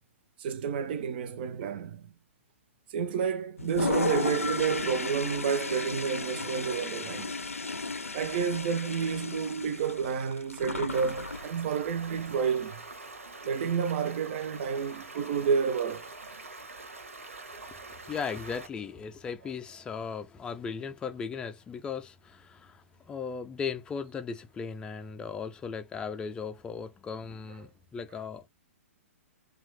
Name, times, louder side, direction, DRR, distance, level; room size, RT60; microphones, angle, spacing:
voice 1, 0.4-2.1 2.9-7.4 8.1-12.8 13.4-16.1, right 6 dB, 45° right, 0.5 m, -30 dB
Toilet flush, 3.6-11.5, left 3 dB, 85° left, 0.4 m, -34 dB
Stream, 10.9-18.7, right 3 dB, 75° right, 0.8 m, -45 dB
voice 2, 18.1-28.5, left 6 dB, 10° left, 0.4 m, -37 dB
3.0 x 2.3 x 3.2 m
figure-of-eight pair, 115°, 7 cm